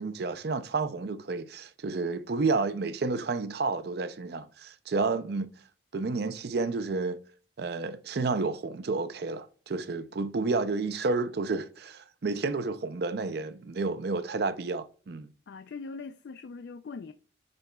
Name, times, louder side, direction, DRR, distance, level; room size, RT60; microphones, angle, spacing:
voice 1, 0.0-5.5 5.9-7.2 7.6-15.3, right 3 dB, 55° right, 0.5 m, -30 dB
voice 2, 15.5-17.1, left 4 dB, 60° left, 0.3 m, -41 dB
10.5 x 4.1 x 2.2 m
head